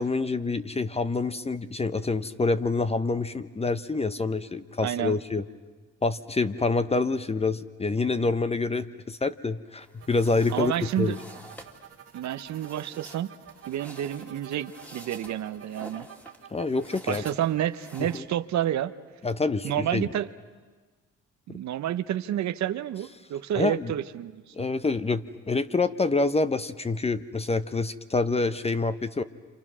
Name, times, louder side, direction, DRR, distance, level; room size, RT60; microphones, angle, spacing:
voice 1, 0.0-5.4 6.0-11.2 16.5-17.2 18.0-18.2 19.2-20.1 21.5-21.6 23.5-23.9 24.5-29.2, left 3 dB, 20° left, 12 dB, 0.8 m, -27 dB
voice 2, 4.8-5.2 10.5-11.2 12.1-13.3 13.7-16.1 17.1-18.9 19.6-20.3 21.5-24.5, right 11 dB, 65° right, 11 dB, 0.8 m, -29 dB
sound 1, 9.8-18.2, equal, 5° left, 2.2 m, -49 dB
sound 2, 10.0-17.6, right 8 dB, 50° right, 1.9 m, -48 dB
28.5 x 27.5 x 6.2 m, 1.4 s
cardioid pair, 90°, 30 cm